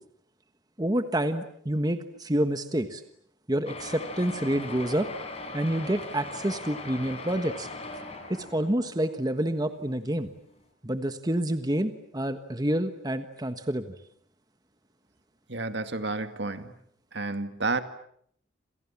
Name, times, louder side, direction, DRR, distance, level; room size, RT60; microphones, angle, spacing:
voice 1, 0.8-3.0 3.5-5.1 5.5-7.7 8.3-10.3 10.8-13.9, right 1 dB, 20° right, 9 dB, 1.4 m, -28 dB
sound 1, 3.7-9.1 9.8-9.9 10.1-10.2 10.6-10.7, left 2 dB, 35° left, 5.3 m, -40 dB
voice 2, 15.5-16.7 17.1-17.8, right 3 dB, 60° right, 9 dB, 2.2 m, -30 dB
29.0 x 27.5 x 7.3 m, 0.66 s
head